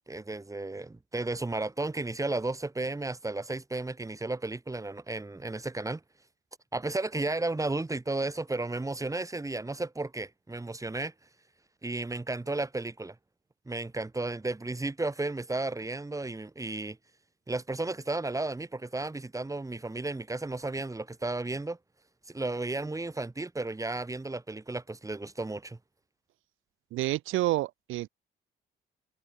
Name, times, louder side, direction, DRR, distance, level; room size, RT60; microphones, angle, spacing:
voice 1, 0.1-6.0 6.7-11.1 11.8-13.2 13.7-17.0 17.5-21.8 22.3-25.8, right 2 dB, 15° right, 3.9 m, -33 dB
voice 2, 26.9-28.1, right 16 dB, 90° right, 1.6 m, -29 dB
cardioid pair, 90°, 20 cm